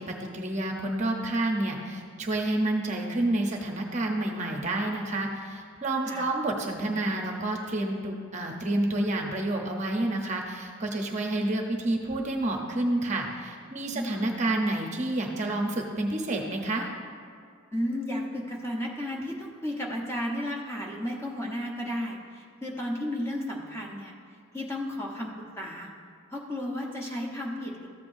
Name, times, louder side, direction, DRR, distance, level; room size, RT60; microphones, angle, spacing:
voice 1, 0.0-16.9, right 1 dB, 35° right, 1 dB, 0.7 m, -29 dB
voice 2, 17.7-24.1 24.5-25.9 26.3-27.9, left 1 dB, 10° left, -2 dB, 0.9 m, -33 dB
14.0 x 8.1 x 2.6 m, 2.2 s
head